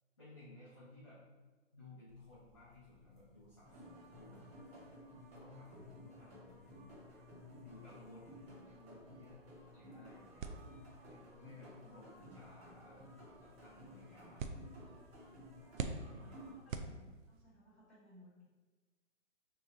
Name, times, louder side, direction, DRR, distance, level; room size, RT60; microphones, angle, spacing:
voice 1, 0.2-1.2 1.7-4.5 5.4-7.0 7.6-9.4 9.7-10.5 11.0-13.0 13.4-15.0 16.1-16.4, left 2 dB, 25° left, -12 dB, 0.6 m, -58 dB
sound 1, 2.1-16.6, left 3 dB, 30° right, 0.8 m, -67 dB
sound 2, 3.6-16.5, equal, 50° right, 1.2 m, -56 dB
sound 3, 10.4-17.5, right 5 dB, 85° right, 0.5 m, -48 dB
voice 2, 11.3-12.4 15.6-18.5, right 1 dB, ahead, -17 dB, 1.1 m, -63 dB
3.2 x 2.2 x 3.7 m, 1.3 s
hypercardioid pair, 170°, 39 cm